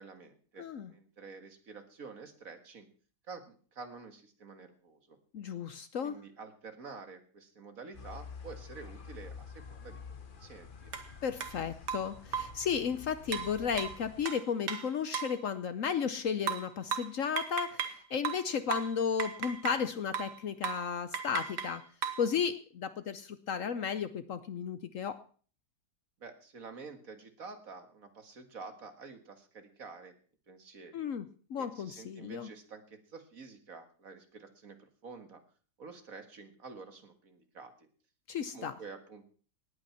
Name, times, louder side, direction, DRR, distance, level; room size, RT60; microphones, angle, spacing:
voice 1, 0.0-2.9 3.3-5.2 6.0-10.9 26.2-30.1 30.5-31.0 31.6-35.4 35.8-37.9 38.5-39.2, right 4 dB, 55° right, 8 dB, 2.1 m, -49 dB
voice 2, 0.6-0.9 5.3-6.2 11.2-21.8 22.2-25.2 30.9-31.2 31.5-32.5 38.3-38.7, left 7 dB, 60° left, 13 dB, 1.0 m, -34 dB
sound 1, 7.9-14.3, left 5 dB, 35° left, 1.2 m, -48 dB
sound 2, 10.9-11.1 11.4-11.5 11.9-12.6 13.3-15.4 16.5-18.0 18.2-19.9 20.1-20.4 20.6-20.9 21.1-22.3, right 7 dB, 80° right, 1.9 m, -37 dB
18.5 x 8.9 x 5.7 m, 0.43 s
omnidirectional pair, 1.8 m